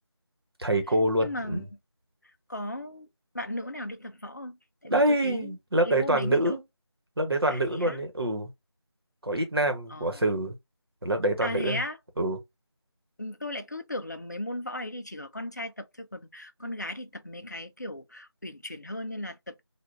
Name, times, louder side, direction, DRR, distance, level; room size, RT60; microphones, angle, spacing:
voice 1, 0.6-1.7 4.9-6.6 7.2-8.5 9.2-10.5 11.0-11.8 12.2-12.4, right 1 dB, 60° right, 1.1 m, -26 dB
voice 2, 1.2-1.8 2.5-3.1 3.3-4.6 4.8-5.5 5.8-6.6 7.5-8.0 9.9-10.2 11.4-12.0 13.2-19.6, left 1 dB, 40° left, 0.4 m, -36 dB
3.4 x 2.4 x 2.5 m
figure-of-eight pair, 175°, 14 cm